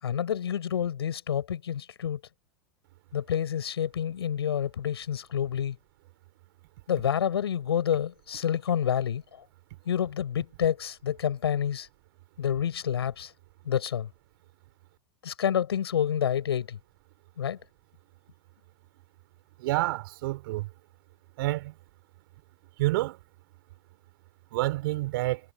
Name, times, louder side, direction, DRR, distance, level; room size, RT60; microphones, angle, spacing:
voice 1, 0.0-2.2 3.1-5.8 6.9-9.2 9.9-11.9 12.4-13.3 13.7-14.1 15.2-16.8 17.4-17.6, left 9 dB, 80° left, 7.0 m, -28 dB
voice 2, 19.6-20.7 21.4-21.7 22.8-23.2 24.5-25.4, right 19 dB, 60° right, 5.7 m, -28 dB
hypercardioid pair, 100°, 13 cm